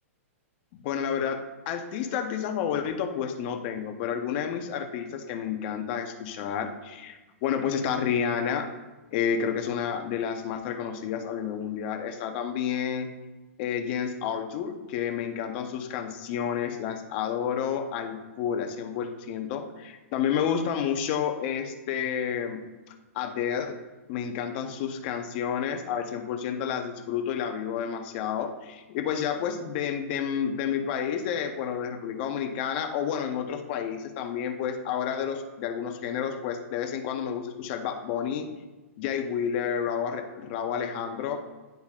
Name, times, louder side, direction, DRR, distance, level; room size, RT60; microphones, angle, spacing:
voice 1, 0.7-8.7 9.1-13.1 13.6-22.6 23.1-23.8 24.1-38.5 39.0-41.4, left 8 dB, 45° left, 5 dB, 0.8 m, -30 dB
10.5 x 4.0 x 2.4 m, 1.1 s
hypercardioid pair, 145°, 8 cm